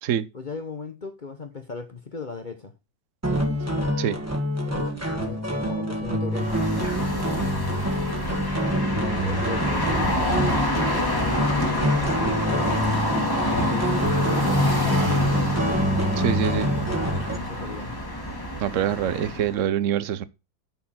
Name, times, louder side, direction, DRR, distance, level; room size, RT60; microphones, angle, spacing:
voice 1, 0.3-2.7 4.6-4.9 5.2-7.5 9.2-11.8 12.2-12.9 13.5-15.2 16.9-18.0, left 4 dB, 40° left, 0.7 m, -37 dB
sound 1, 3.2-17.4, equal, 10° right, 1.4 m, -26 dB
sound 2, 6.3-19.6, left 1 dB, 10° left, 1.7 m, -27 dB
voice 2, 16.2-16.7 18.6-20.2, right 10 dB, 70° right, 0.7 m, -25 dB
9.4 x 4.5 x 5.7 m
omnidirectional pair, 2.0 m